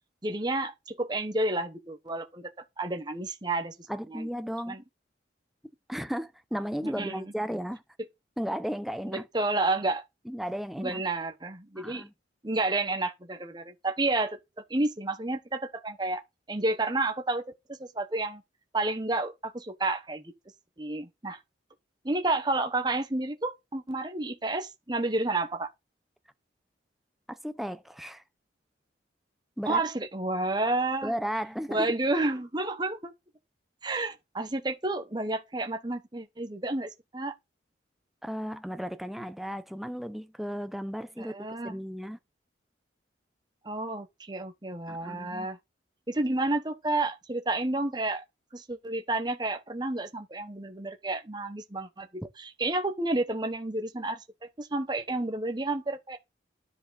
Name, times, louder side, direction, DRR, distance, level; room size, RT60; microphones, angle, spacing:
voice 1, 0.2-2.5 2.8-3.7 4.1-4.3 4.7-4.8 7.0-7.2 9.1-10.0 10.8-12.0 12.4-14.4 14.7-16.2 16.5-18.4 18.7-20.3 20.8-21.4 22.0-25.7 29.7-31.1 31.7-33.1 33.8-37.3 41.2-41.8 43.6-45.6 46.1-48.2 48.5-54.2 54.6-56.2, right 2 dB, 25° right, 1.0 m, -30 dB
voice 2, 3.9-4.8 5.9-7.8 8.4-9.3 10.3-11.0 11.8-12.1 27.3-28.2 29.6-29.8 31.0-32.0 38.2-41.4 41.6-42.2 44.9-45.5, equal, ahead, 0.6 m, -34 dB
10.5 x 4.9 x 4.1 m
head